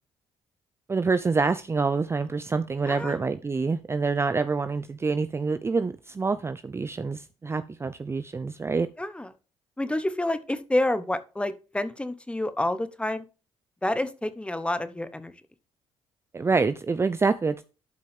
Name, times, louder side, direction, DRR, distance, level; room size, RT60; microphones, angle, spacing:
voice 1, 0.9-8.9 16.3-17.6, right 4 dB, 25° right, 12 dB, 0.5 m, -26 dB
voice 2, 2.9-3.2 9.0-9.3 9.8-13.2 13.8-15.3, left 1 dB, 10° left, 12 dB, 1.1 m, -28 dB
11.5 x 5.2 x 3.6 m, 0.33 s
supercardioid pair, 70°, 11 cm